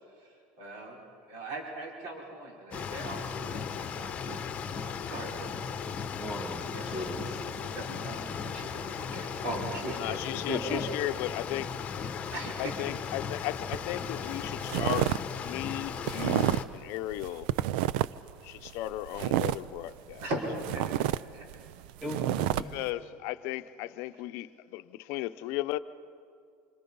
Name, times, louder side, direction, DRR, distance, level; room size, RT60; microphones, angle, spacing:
voice 1, 0.6-1.0 1.3-4.4 4.8-5.3 6.7-10.2 12.3-12.5 20.2-20.8 21.3-21.5, right 1 dB, 60° right, 4.9 m, -39 dB
sound 1, 2.7-16.6, left 6 dB, 25° left, 1.1 m, -37 dB
voice 2, 6.1-7.4 10.5-10.8 22.0-22.7, equal, 5° right, 2.0 m, -36 dB
voice 3, 10.0-11.8 12.6-15.1 15.4-17.5 18.4-20.3 22.6-25.8, left 16 dB, 60° left, 0.7 m, -35 dB
sound 2, 13.7-13.9 14.3-15.2 15.5-16.7 17.1-18.3 18.6-20.3 20.6-22.6, right 14 dB, 80° right, 0.5 m, -29 dB
27.0 x 26.0 x 5.5 m
cardioid pair, 145°, 5 cm